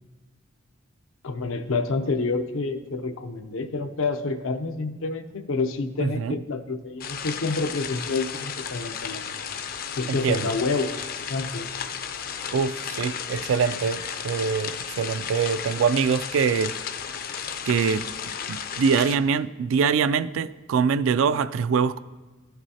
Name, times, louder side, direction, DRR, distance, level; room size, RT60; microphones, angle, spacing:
voice 1, 1.2-9.2 10.0-11.7, left 3 dB, 85° left, 0.6 m, -28 dB
voice 2, 6.0-6.4 10.1-10.5 12.5-16.7 17.7-18.1 18.5-22.0, right 6 dB, 75° right, 0.3 m, -24 dB
sound 1, 7.0-19.2, left 7 dB, 50° left, 0.5 m, -34 dB
14.5 x 6.0 x 2.8 m
head